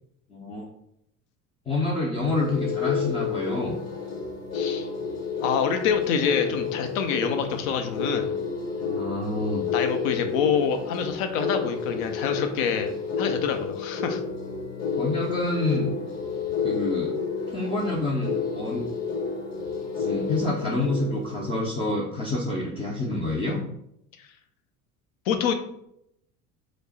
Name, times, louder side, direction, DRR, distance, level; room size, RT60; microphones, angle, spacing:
voice 1, 0.3-0.6 1.7-3.8 8.8-9.7 15.0-15.9 16.6-17.2 17.5-18.9 20.0-23.6, left 2 dB, 15° left, -2 dB, 0.4 m, -28 dB
sound 1, 2.2-21.7, left 5 dB, 35° left, 0.9 m, -30 dB
voice 2, 4.5-4.9 5.4-8.3 9.7-12.9 13.2-14.2 25.3-25.5, left 7 dB, 60° left, 7 dB, 0.6 m, -26 dB
3.2 x 2.0 x 4.0 m, 0.77 s
figure-of-eight pair, 70°, 46 cm